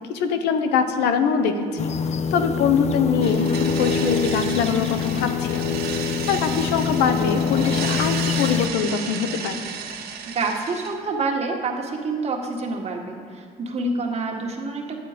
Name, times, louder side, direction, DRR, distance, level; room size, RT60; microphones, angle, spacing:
voice 1, 0.1-1.9 2.3-5.8 6.3-9.6, left 6 dB, 85° left, 8 dB, 0.9 m, -23 dB
sound 1, 1.8-8.7, left 6 dB, 40° left, 0.6 m, -25 dB
sound 2, 3.2-10.9, right 7 dB, 65° right, 1.5 m, -33 dB
voice 2, 10.2-15.0, right 3 dB, 40° right, 1 dB, 1.6 m, -27 dB
11.0 x 9.3 x 5.1 m, 2.1 s
cardioid pair, 110°, 17 cm